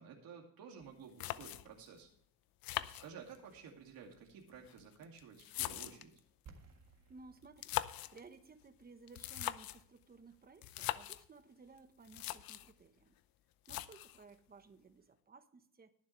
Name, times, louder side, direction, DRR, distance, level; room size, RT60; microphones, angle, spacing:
voice 1, 0.0-2.1 3.0-6.2, right 6 dB, 80° right, 0 dB, 2.5 m, -53 dB
sound 1, 0.8-0.9 1.2-1.9 2.6-3.6 4.5-6.2 7.4-8.2 9.1-9.9 10.6-11.3 11.8-11.9 12.1-12.7 13.7-14.2, left 14 dB, 85° left, 0.7 m, -41 dB
sound 2, 6.5-12.2, right 5 dB, 50° right, 1.9 m, -64 dB
voice 2, 7.1-7.8 8.1-13.2 13.7-15.9, right 4 dB, 25° right, 10 dB, 1.2 m, -58 dB
21.0 x 7.4 x 3.3 m, 0.64 s
cardioid pair, 135°, 34 cm